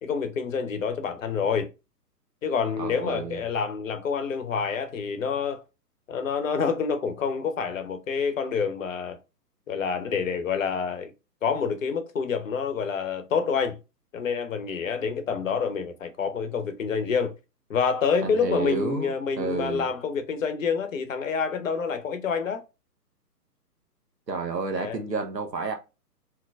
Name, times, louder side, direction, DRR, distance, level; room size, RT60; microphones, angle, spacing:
voice 1, 0.0-1.7 2.4-5.6 6.1-9.2 9.7-11.1 11.4-13.8 14.1-17.3 17.7-22.6 24.8-25.0, left 6 dB, 55° left, 0.8 m, -27 dB
voice 2, 2.8-3.4 18.2-19.9 24.3-25.8, right 4 dB, 90° right, 0.9 m, -30 dB
3.7 x 2.9 x 2.3 m
figure-of-eight pair, 130°, 48 cm